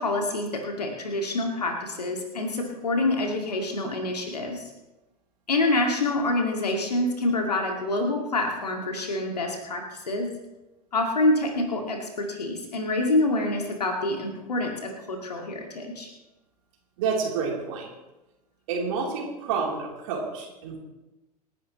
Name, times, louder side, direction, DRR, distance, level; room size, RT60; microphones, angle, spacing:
voice 1, 0.0-4.7 5.5-10.4 10.9-16.1, left 2 dB, 75° left, 2 dB, 2.2 m, -27 dB
voice 2, 17.0-17.9 18.7-20.8, right 5 dB, 55° right, -2 dB, 3.5 m, -29 dB
28.5 x 10.0 x 3.1 m, 1.0 s
figure-of-eight pair, 85°, 20 cm